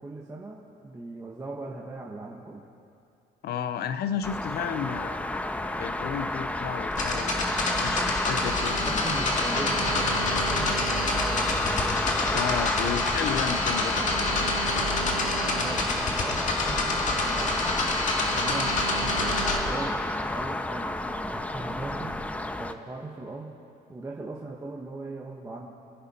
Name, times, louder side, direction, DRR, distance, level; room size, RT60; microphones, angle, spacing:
voice 1, 0.0-2.6 8.7-10.9 15.4-18.0 18.3-20.0 20.3-23.6 23.9-25.7, right 2 dB, 15° right, -3 dB, 1.3 m, -39 dB
voice 2, 3.4-5.2 5.8-9.3 12.3-14.3, left 8 dB, 60° left, 12 dB, 0.8 m, -33 dB
sound 1, 4.2-22.7, left 1 dB, 5° left, 0.6 m, -30 dB
sound 2, 6.9-19.6, left 2 dB, 45° left, 2.1 m, -28 dB
27.5 x 10.5 x 4.3 m, 2.5 s
cardioid pair, 135°, 18 cm